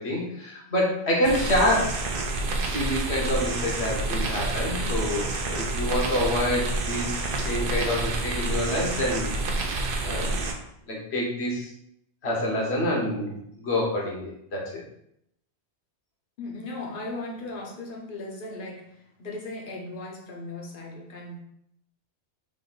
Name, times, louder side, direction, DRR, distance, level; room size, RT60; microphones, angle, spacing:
voice 1, 0.0-2.1 2.6-9.3 10.0-10.4 10.9-11.7 12.2-14.8, left 1 dB, 65° left, -2 dB, 1.3 m, -27 dB
sound 1, 1.2-10.5, right 2 dB, 55° right, 0.7 m, -28 dB
voice 2, 16.4-21.4, left 2 dB, 50° left, 0 dB, 0.9 m, -37 dB
3.7 x 2.6 x 3.9 m, 0.74 s
omnidirectional pair, 1.2 m